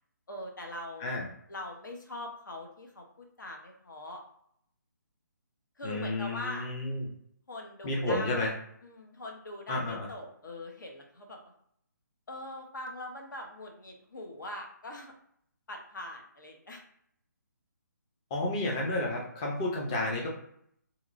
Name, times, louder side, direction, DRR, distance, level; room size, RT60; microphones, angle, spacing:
voice 1, 0.3-1.2 1.5-4.2 5.8-6.7 7.5-8.5 8.8-11.5 12.3-15.1 15.7-16.8, left 1 dB, 80° left, 2 dB, 0.8 m, -42 dB
voice 2, 5.8-7.1 7.8-8.5 9.7-10.1 18.3-20.3, left 2 dB, 15° left, -1 dB, 0.4 m, -31 dB
2.9 x 2.9 x 2.5 m, 0.67 s
hypercardioid pair, 165°, 10 cm